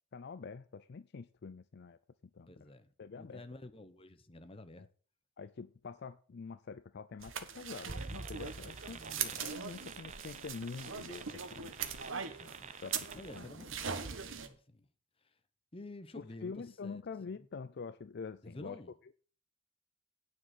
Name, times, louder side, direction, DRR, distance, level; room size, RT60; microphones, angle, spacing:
voice 1, 0.1-2.0 2.3-2.7 3.0-3.4 4.8-4.9 5.4-11.7 12.8-13.5 16.1-18.8, left 5 dB, 55° left, 0.4 m, -46 dB
voice 2, 2.5-4.9 8.9-10.0 12.3-12.7 13.1-14.9 15.7-17.0 18.4-18.9, left 2 dB, 30° left, 1.0 m, -51 dB
sound 1, 7.2-14.5, right 7 dB, 75° right, 1.4 m, -41 dB
sound 2, 7.9-13.4, right 4 dB, 35° right, 0.8 m, -48 dB
9.6 x 6.6 x 7.6 m
head